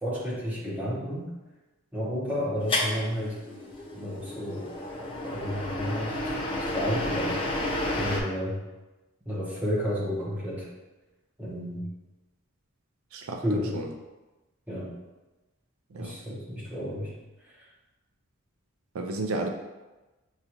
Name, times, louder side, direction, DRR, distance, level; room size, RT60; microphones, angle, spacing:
voice 1, 0.0-1.3 1.9-3.4 3.9-4.7 5.3-7.7 7.9-8.6 9.3-10.7 11.4-11.9 13.4-13.8 14.7-14.9 16.0-17.1 17.5-17.6, equal, 5° right, -7 dB, 0.9 m, -31 dB
sound 1, 2.7-8.2, left 1 dB, 25° left, 0.6 m, -31 dB
voice 2, 13.1-13.4 13.7-13.9 15.9-16.1 18.9-19.5, right 2 dB, 75° right, 4 dB, 0.4 m, -32 dB
6.7 x 2.4 x 2.9 m, 1.1 s
head